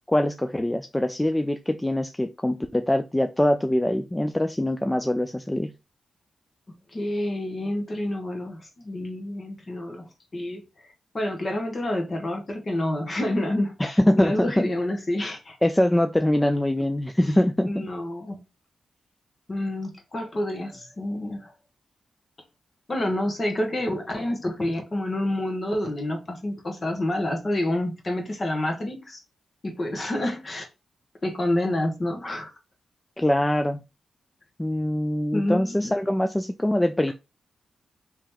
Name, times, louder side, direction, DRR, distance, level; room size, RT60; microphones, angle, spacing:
voice 1, 0.1-5.7 13.8-14.7 15.6-17.9 33.2-33.8 34.6-37.1, left 1 dB, 10° left, 0.3 m, -23 dB
voice 2, 6.9-10.6 11.1-15.6 17.2-17.4 17.7-18.4 19.5-21.5 22.9-29.2 29.6-30.7 31.2-32.5 35.3-35.9, left 1 dB, 40° left, 1.2 m, -28 dB
3.0 x 2.8 x 3.5 m
cardioid pair, 70°, 0 cm